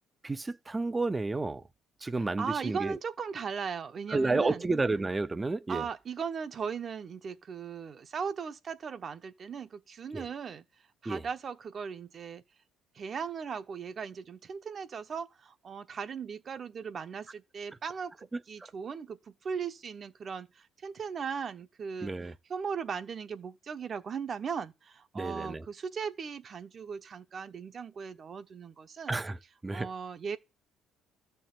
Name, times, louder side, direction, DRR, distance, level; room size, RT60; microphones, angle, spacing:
voice 1, 0.2-1.6 2.0-3.0 4.1-5.9 10.1-10.2 11.1-11.2 18.3-18.4 22.0-22.3 25.1-25.6 29.1-29.4 29.6-29.9, right 3 dB, 20° right, 0.7 m, -31 dB
voice 2, 2.2-4.6 5.7-10.6 11.0-12.4 12.9-18.1 18.5-29.2 29.7-30.4, right 6 dB, 45° right, 1.0 m, -38 dB
13.5 x 4.6 x 7.8 m
supercardioid pair, 70°, 0 cm